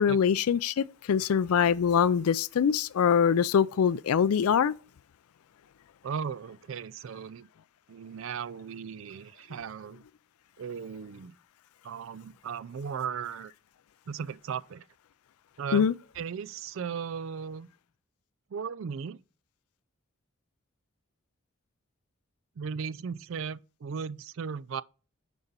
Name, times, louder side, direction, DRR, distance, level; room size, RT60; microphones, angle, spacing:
voice 1, 0.0-4.7 15.7-15.9, left 7 dB, 80° left, 0.4 m, -24 dB
voice 2, 6.0-7.5 7.9-10.0 10.6-11.3 11.8-13.5 14.1-14.8 15.6-15.9 16.2-17.7 18.5-19.2 22.6-24.8, right 6 dB, 60° right, 0.4 m, -36 dB
9.5 x 4.2 x 6.7 m
head